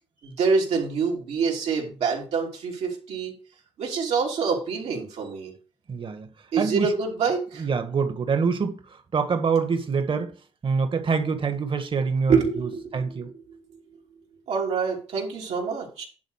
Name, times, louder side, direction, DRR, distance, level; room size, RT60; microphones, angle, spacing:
voice 1, 0.2-3.3 3.8-5.5 6.5-7.7 12.3-13.2 13.5-13.8 14.5-16.1, right 5 dB, 85° right, 2.9 m, -26 dB
voice 2, 5.9-6.3 6.6-6.9 7.6-10.3 10.6-13.3, right 5 dB, 55° right, 1.6 m, -26 dB
10.5 x 4.0 x 6.4 m
cardioid pair, 60°, 11 cm